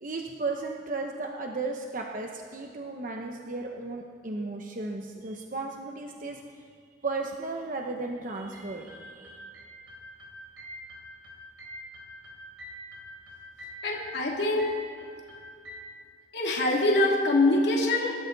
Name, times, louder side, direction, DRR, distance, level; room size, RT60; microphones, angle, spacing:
voice 1, 0.0-6.4 7.0-9.4, right 3 dB, 50° right, 1 dB, 1.0 m, -35 dB
sound 1, 8.5-15.8, equal, 85° right, 3.4 m, -46 dB
voice 2, 13.8-14.7 16.3-18.1, left 2 dB, 65° left, -2 dB, 2.9 m, -24 dB
26.5 x 13.0 x 4.0 m, 2.2 s
head